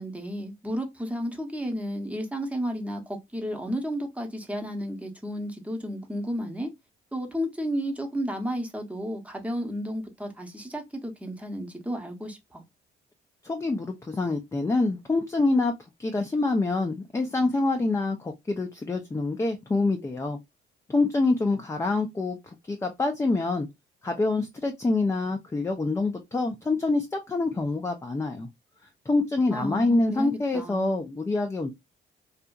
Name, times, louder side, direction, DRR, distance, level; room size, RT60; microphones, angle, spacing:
voice 1, 0.0-6.7 7.1-12.6 29.5-31.0, equal, 5° right, 0.8 m, -32 dB
voice 2, 13.4-15.7 16.0-20.4 20.9-23.7 24.0-28.5 29.1-31.7, left 3 dB, 15° left, 0.4 m, -26 dB
2.7 x 2.4 x 2.3 m
cardioid pair, 90°, 20 cm